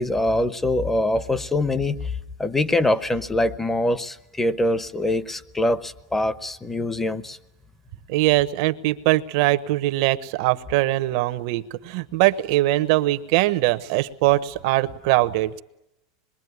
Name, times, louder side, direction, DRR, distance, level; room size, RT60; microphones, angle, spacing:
voice 1, 0.0-2.1 2.4-7.4, left 1 dB, 10° left, 14 dB, 0.9 m, -23 dB
voice 2, 8.1-15.6, right 17 dB, 65° right, 11 dB, 1.1 m, -21 dB
26.0 x 22.0 x 9.6 m, 0.86 s
supercardioid pair, 145°, 3 cm